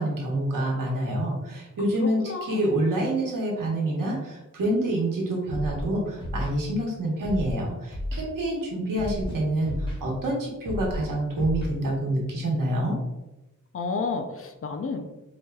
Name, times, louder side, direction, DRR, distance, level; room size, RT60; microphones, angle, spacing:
voice 1, 0.0-13.0, right 1 dB, 85° right, -2 dB, 1.1 m, -27 dB
voice 2, 2.0-2.6 13.7-15.1, left 4 dB, 45° left, 5 dB, 0.4 m, -31 dB
Scratching (performance technique), 5.5-5.8 6.2-6.5 7.2-7.5 7.9-8.2 9.0-9.3 9.6-10.0 10.7-11.0 11.4-11.7, left 1 dB, 15° left, 1.0 m, -32 dB
4.6 x 2.9 x 2.2 m, 0.98 s
wide cardioid pair, 145°, 32 cm